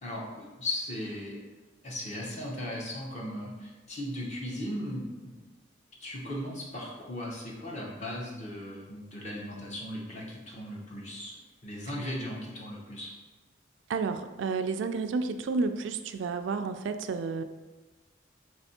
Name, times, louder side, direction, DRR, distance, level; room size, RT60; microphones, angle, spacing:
voice 1, 0.0-1.3 1.8-5.0 6.0-11.4 11.6-13.1, left 1 dB, 40° left, -3 dB, 0.9 m, -37 dB
voice 2, 13.9-17.4, right 4 dB, 80° right, 9 dB, 0.3 m, -31 dB
3.4 x 3.3 x 4.2 m, 1.2 s
head